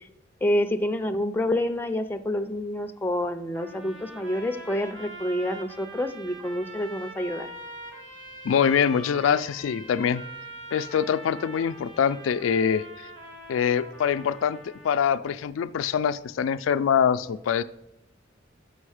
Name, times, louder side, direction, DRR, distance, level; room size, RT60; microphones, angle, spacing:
voice 1, 0.4-7.5, left 1 dB, 10° left, 6 dB, 0.5 m, -28 dB
sound 1, 3.5-15.1, right 1 dB, 70° right, 1.6 m, -43 dB
voice 2, 8.4-10.2 10.7-12.8 13.5-17.6, left 7 dB, 85° left, 12 dB, 0.3 m, -24 dB
7.7 x 5.4 x 4.9 m, 0.88 s
head